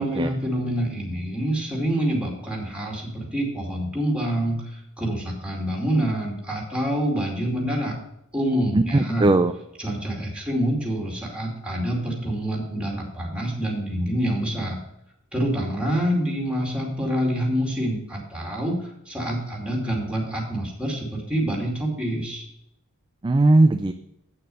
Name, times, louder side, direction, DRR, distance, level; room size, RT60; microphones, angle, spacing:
voice 1, 0.0-8.0 8.3-9.3 9.8-14.8 15.3-22.4, right 1 dB, 5° right, -1 dB, 2.5 m, -26 dB
voice 2, 8.7-9.5 23.2-23.9, right 2 dB, 20° right, 8 dB, 0.4 m, -18 dB
8.4 x 6.7 x 5.4 m, 0.80 s
head